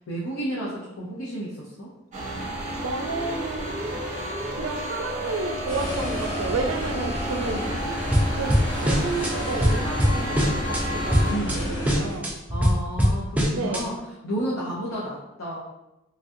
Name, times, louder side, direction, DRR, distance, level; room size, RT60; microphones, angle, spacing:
voice 1, 0.0-1.9 7.5-8.0 11.3-11.6 12.5-13.9 14.2-15.6, right 1 dB, 75° left, -6 dB, 0.6 m, -32 dB
sound 1, 2.1-11.3, equal, 35° right, 0.7 m, -32 dB
voice 2, 2.7-3.8 4.5-7.6 8.3-12.3 13.5-13.9, right 3 dB, 85° right, 5 dB, 0.4 m, -31 dB
sound 2, 5.7-12.2, left 1 dB, 20° left, 0.7 m, -31 dB
sound 3, 8.1-9.3 9.6-10.8 11.1-11.6 11.9-13.8, equal, 5° right, 0.3 m, -22 dB
3.2 x 2.4 x 2.7 m, 0.94 s
head